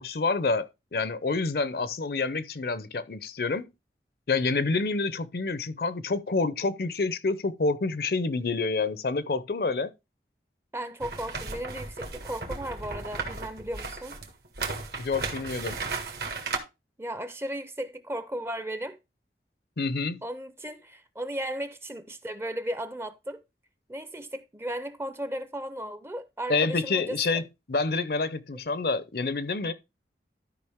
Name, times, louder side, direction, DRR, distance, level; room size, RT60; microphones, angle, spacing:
voice 1, 0.0-3.7 4.3-9.9 15.0-15.8 19.8-20.2 26.5-27.4 27.7-29.7, left 3 dB, 55° left, 0.6 m, -28 dB
voice 2, 10.7-14.2 17.0-19.0 20.2-23.4 23.9-27.4, right 1 dB, 15° right, 0.6 m, -35 dB
sound 1, 11.0-16.6, right 4 dB, 60° right, 1.6 m, -35 dB
12.5 x 5.1 x 3.5 m
head